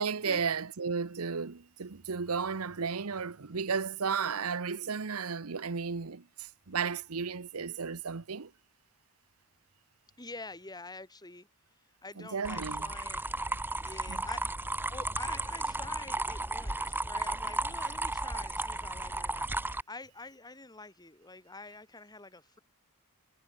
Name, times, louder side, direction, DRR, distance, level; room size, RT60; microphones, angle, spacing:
voice 1, 0.0-8.5 12.2-12.9 14.1-14.2, right 5 dB, 85° right, 0.9 m, -34 dB
voice 2, 10.2-11.5 12.0-13.3 13.8-14.6 14.9-22.6, left 3 dB, 20° left, 6.1 m, -47 dB
sound 1, 12.4-19.8, right 2 dB, 10° right, 1.0 m, -34 dB
head